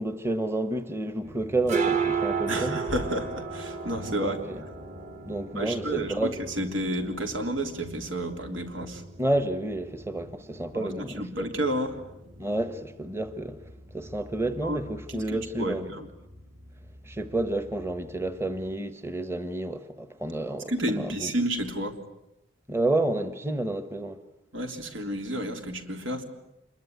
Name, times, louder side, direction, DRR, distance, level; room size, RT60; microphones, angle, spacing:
voice 1, 0.0-2.8 4.1-4.6 5.2-6.4 9.2-11.5 12.4-13.6 13.9-15.9 17.0-21.3 22.7-24.2, right 2 dB, 15° right, 1.1 m, -30 dB
sound 1, 1.3-18.7, right 5 dB, 35° right, 1.8 m, -36 dB
voice 2, 2.5-4.4 5.6-9.0 10.7-12.0 14.6-14.8 15.1-16.1 20.7-22.0 24.5-26.2, right 1 dB, 85° right, 3.4 m, -31 dB
27.0 x 22.5 x 9.4 m
head